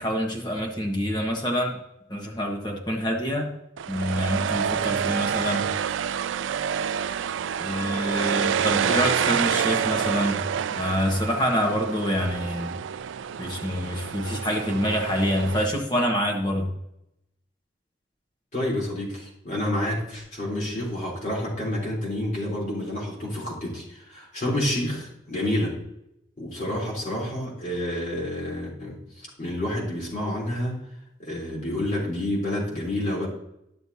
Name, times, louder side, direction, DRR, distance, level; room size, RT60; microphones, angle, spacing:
voice 1, 0.0-1.8 2.1-3.5 3.9-5.7 7.6-10.4 10.7-12.7 13.4-16.7, equal, 25° left, 1 dB, 1.4 m, -26 dB
sound 1, 3.8-15.7, right 8 dB, 90° right, 0.4 m, -28 dB
voice 2, 18.5-25.8 26.4-30.8 31.2-33.3, left 1 dB, 40° left, -4 dB, 3.7 m, -29 dB
13.0 x 6.8 x 2.8 m, 0.82 s
head